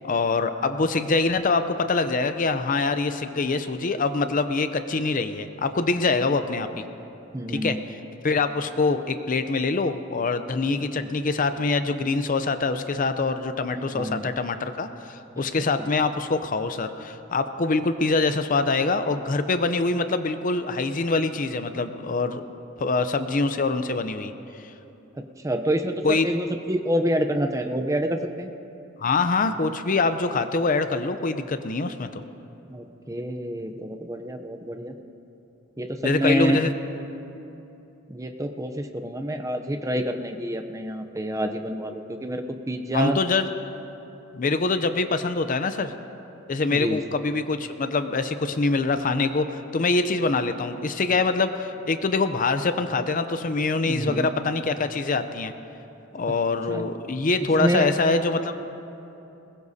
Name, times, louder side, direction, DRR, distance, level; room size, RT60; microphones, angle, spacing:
voice 1, 0.0-6.8 7.5-7.8 8.2-22.4 22.8-24.3 24.6-24.7 26.0-26.3 29.0-32.2 36.0-36.7 42.9-43.5 44.3-45.9 46.5-55.5 56.1-58.6, left 3 dB, 40° left, 10 dB, 0.5 m, -24 dB
voice 2, 7.3-7.8 11.0-11.1 13.8-14.2 15.4-15.5 25.2-28.5 32.7-34.9 35.8-36.7 38.1-43.2 46.7-47.0 53.9-54.3 56.7-56.9 57.6-57.9, equal, 15° right, 6 dB, 0.6 m, -27 dB
21.5 x 20.5 x 2.8 m, 2.9 s
head